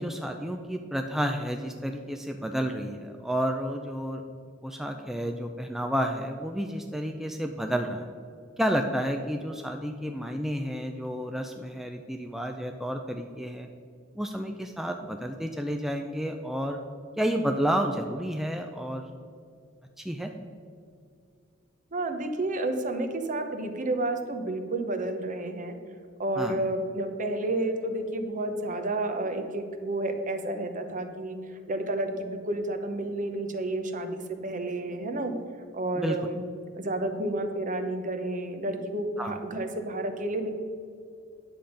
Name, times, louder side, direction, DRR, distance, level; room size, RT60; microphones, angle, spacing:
voice 1, 0.0-4.2 4.6-8.1 8.6-13.7 14.2-16.8 17.2-19.1 20.0-20.3 26.4-26.6 36.0-36.2 39.2-39.4, equal, ahead, 4 dB, 0.4 m, -30 dB
voice 2, 21.9-25.8 26.2-35.3 35.7-36.4 36.8-40.5, right 2 dB, 40° right, 7 dB, 0.9 m, -31 dB
9.9 x 7.1 x 5.1 m, 2.3 s
head